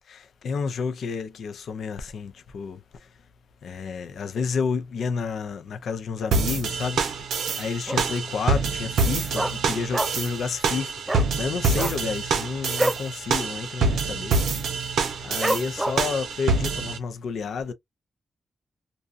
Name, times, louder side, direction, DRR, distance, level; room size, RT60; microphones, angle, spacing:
voice 1, 0.1-2.8 3.6-7.0 7.6-11.0 11.4-14.4 15.2-17.7, left 5 dB, 80° left, 0.4 m, -30 dB
sound 1, 6.3-17.0, right 4 dB, 90° right, 0.6 m, -26 dB
Dog, 7.9-8.3 8.6-8.7 9.0-10.4 10.7-10.8 11.0-11.3 11.7-13.1 13.5-13.6 13.9-14.3 14.7-14.8 15.4-16.2 16.7-16.8, right 1 dB, 15° right, 0.3 m, -27 dB
2.6 x 2.2 x 2.4 m
cardioid pair, 55°, 0 cm